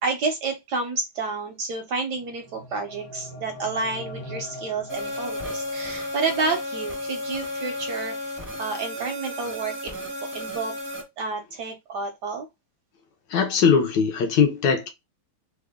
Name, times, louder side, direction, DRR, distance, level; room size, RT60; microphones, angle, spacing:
voice 1, 0.0-8.3 8.6-10.0 10.3-10.7 11.2-12.5, right 4 dB, 70° right, 1.0 m, -30 dB
sound 1, 2.1-6.1, left 1 dB, 45° left, 1.0 m, -41 dB
sound 2, 4.9-11.0, left 1 dB, 20° right, 0.3 m, -33 dB
voice 2, 13.3-14.9, left 6 dB, 75° left, 1.2 m, -20 dB
3.3 x 2.2 x 3.5 m
omnidirectional pair, 2.2 m